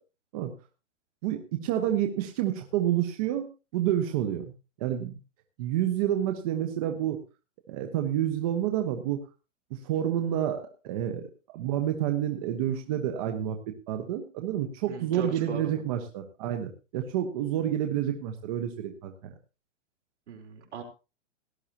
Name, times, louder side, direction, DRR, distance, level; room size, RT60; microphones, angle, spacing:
voice 1, 1.2-3.5 3.7-4.5 4.8-5.2 5.6-7.2 7.7-9.2 9.7-19.3, right 11 dB, 30° right, 5 dB, 1.2 m, -29 dB
voice 2, 14.9-15.8 17.6-17.7 20.3-20.8, right 6 dB, 65° right, 2 dB, 4.3 m, -38 dB
18.0 x 11.5 x 2.9 m, 0.30 s
hypercardioid pair, 165°, 37 cm